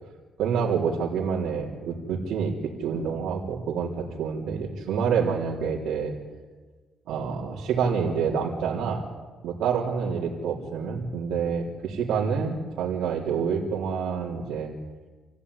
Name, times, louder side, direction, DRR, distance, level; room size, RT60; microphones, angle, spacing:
voice 1, 0.4-6.1 7.1-9.0 9.4-14.7, right 6 dB, 85° right, -4 dB, 3.7 m, -27 dB
27.5 x 15.5 x 9.9 m, 1.4 s
cardioid pair, 100°, 0 cm